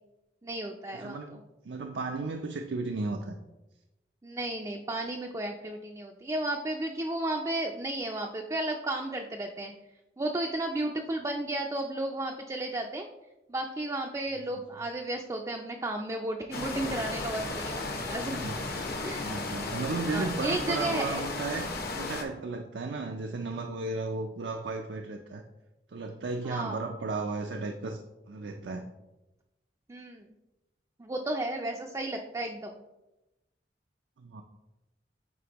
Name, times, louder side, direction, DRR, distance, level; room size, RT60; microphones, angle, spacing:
voice 1, 0.4-1.4 4.2-9.7 10.2-13.1 13.5-18.4 19.0-19.2 20.1-21.3 26.4-26.8 29.9-30.3 31.0-32.8, right 1 dB, 20° right, 2 dB, 0.4 m, -33 dB
voice 2, 0.9-3.4 14.5-14.6 18.2-18.6 19.2-25.4 25.9-28.0 28.3-28.9 34.2-34.4, right 3 dB, 85° right, 4 dB, 0.5 m, -35 dB
sound 1, 16.5-22.2, left 3 dB, 60° left, 0.9 m, -35 dB
8.3 x 4.1 x 2.9 m, 1.0 s
head